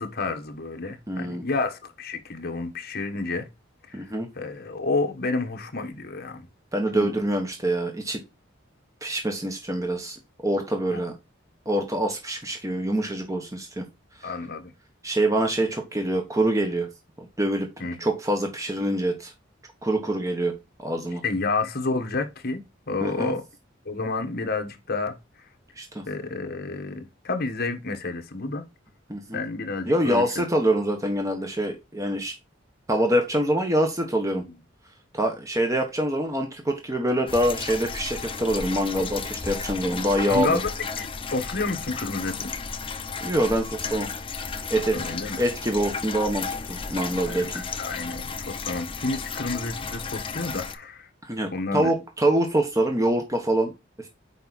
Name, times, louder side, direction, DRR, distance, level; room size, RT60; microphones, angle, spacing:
voice 1, 0.0-3.5 3.9-4.1 4.3-6.5 6.9-7.1 10.9-11.0 14.2-14.7 17.8-18.0 21.2-23.4 23.8-25.2 26.1-28.6 29.3-30.4 34.4-34.5 39.9-40.7 41.0-42.5 44.9-45.4 47.2-51.1 51.5-51.9, left 3 dB, 50° left, 1.3 m, -30 dB
voice 2, 1.1-1.4 3.9-4.3 6.7-8.2 9.0-11.1 11.7-13.8 14.2-14.3 15.0-16.9 17.4-17.7 18.0-19.3 19.8-21.2 23.0-23.3 25.8-26.0 29.1-29.4 29.9-32.3 32.9-34.4 35.1-40.6 43.2-44.1 44.7-45.0 45.4-47.6 51.2-53.7, right 1 dB, 15° right, 1.1 m, -25 dB
sound 1, 37.3-50.8, left 5 dB, 30° left, 0.7 m, -34 dB
6.9 x 5.0 x 4.2 m
head